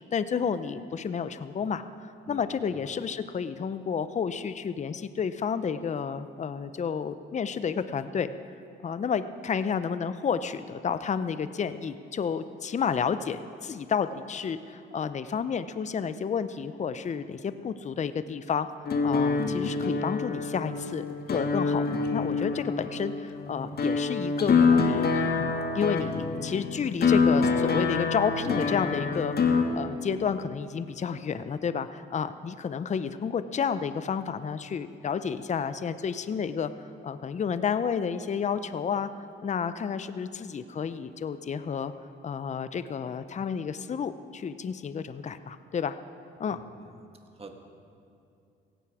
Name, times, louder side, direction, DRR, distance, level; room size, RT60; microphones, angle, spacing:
voice 1, 0.1-8.3 8.8-18.7 19.0-36.7 37.0-39.1 39.4-41.9 42.2-46.0 46.4-46.6, left 6 dB, 35° left, 12 dB, 0.6 m, -31 dB
sound 1, 18.8-29.6, left 4 dB, 50° left, 1.6 m, -26 dB
voice 2, 46.5-46.9 47.4-47.5, right 4 dB, 30° right, 4 dB, 1.9 m, -46 dB
17.0 x 16.0 x 4.9 m, 2.5 s
cardioid pair, 90°, 20 cm